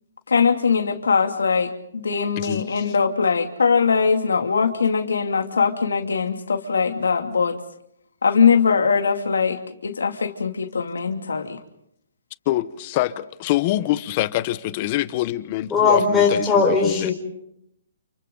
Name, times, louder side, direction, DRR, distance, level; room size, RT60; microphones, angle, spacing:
voice 1, 0.3-7.6 8.2-11.6, left 5 dB, 90° left, 6 dB, 2.7 m, -21 dB
voice 2, 2.4-2.8 12.5-17.1, left 15 dB, 35° left, 15 dB, 1.0 m, -25 dB
voice 3, 15.7-17.1, left 4 dB, 10° left, -3 dB, 4.5 m, -18 dB
30.0 x 29.5 x 4.0 m, 0.74 s
hypercardioid pair, 155°, 0 cm